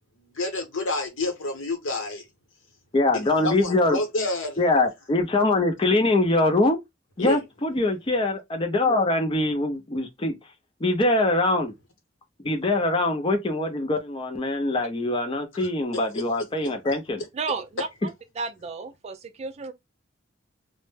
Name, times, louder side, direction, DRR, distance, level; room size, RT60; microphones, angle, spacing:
voice 1, 0.4-2.2 3.1-4.6 7.2-7.4, left 2 dB, 80° left, 0.9 m, -28 dB
voice 2, 2.9-4.0 4.6-6.8 7.2-10.3 10.8-11.7 12.4-17.2, left 2 dB, 25° left, 0.5 m, -23 dB
voice 3, 17.3-19.7, right 4 dB, 35° right, 0.4 m, -33 dB
2.1 x 2.0 x 3.1 m
head